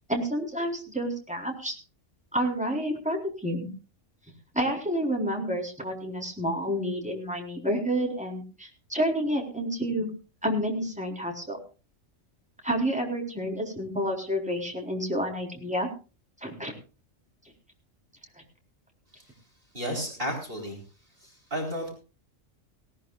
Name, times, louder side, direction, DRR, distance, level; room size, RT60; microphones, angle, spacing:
voice 1, 0.1-1.7 2.3-3.7 4.5-10.1 10.4-11.6 12.6-15.9 16.4-16.7, equal, 5° right, 0 dB, 4.2 m, -29 dB
voice 2, 19.7-20.8 21.2-21.9, equal, 45° right, 0 dB, 4.3 m, -33 dB
19.0 x 17.5 x 2.4 m, 0.34 s
omnidirectional pair, 1.3 m